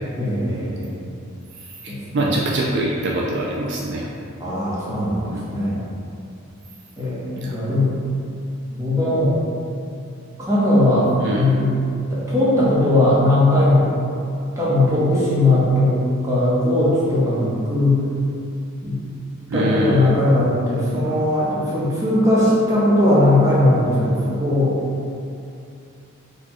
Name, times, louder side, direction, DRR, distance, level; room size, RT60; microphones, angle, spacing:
voice 1, 0.2-0.9 1.9-2.0 2.2-2.3 4.4-5.8 7.0-7.9 8.7-9.4 10.4-11.1 11.4-11.7 12.1-13.9 14.6-16.0 16.2-18.0 18.8-19.0 19.5-24.7, left 1 dB, 15° right, -9 dB, 0.8 m, -18 dB
voice 2, 1.8-4.1 5.3-5.5 7.4-7.6 11.2-11.5 19.5-20.1, right 1 dB, 55° right, -3 dB, 0.3 m, -23 dB
4.3 x 2.2 x 2.9 m, 2.6 s
head